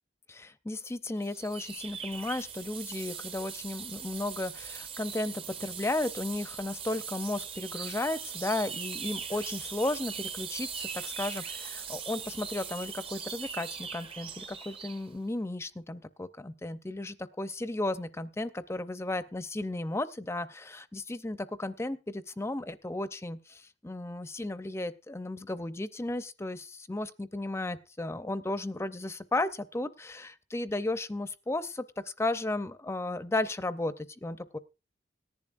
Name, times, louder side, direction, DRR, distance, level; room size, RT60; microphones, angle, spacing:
voice 1, 0.3-34.6, left 2 dB, 15° left, 13 dB, 0.5 m, -34 dB
sound 1, 1.2-15.1, right 7 dB, 30° right, 0.6 m, -40 dB
17.5 x 10.5 x 2.5 m, 0.30 s
head